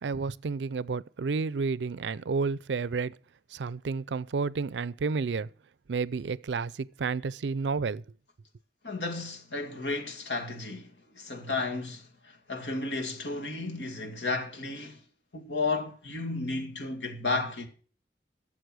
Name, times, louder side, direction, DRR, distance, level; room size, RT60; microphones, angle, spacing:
voice 1, 0.0-3.1 3.5-5.5 5.9-8.0, right 4 dB, 85° right, 0.5 m, -31 dB
voice 2, 8.8-15.0 15.3-17.7, left 3 dB, 85° left, 2.3 m, -33 dB
13.0 x 7.4 x 6.2 m
head